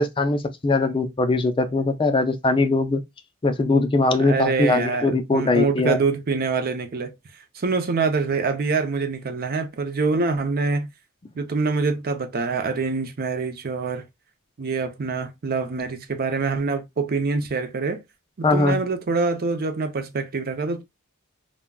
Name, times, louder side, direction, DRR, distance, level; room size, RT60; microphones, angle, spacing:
voice 1, 0.0-3.0 3.4-6.0 18.4-18.8, left 2 dB, 25° left, 0.4 m, -21 dB
voice 2, 4.2-7.1 7.5-10.9 11.4-14.0 14.6-18.0 18.4-20.8, right 4 dB, 45° right, 0.5 m, -25 dB
3.5 x 2.1 x 2.2 m
head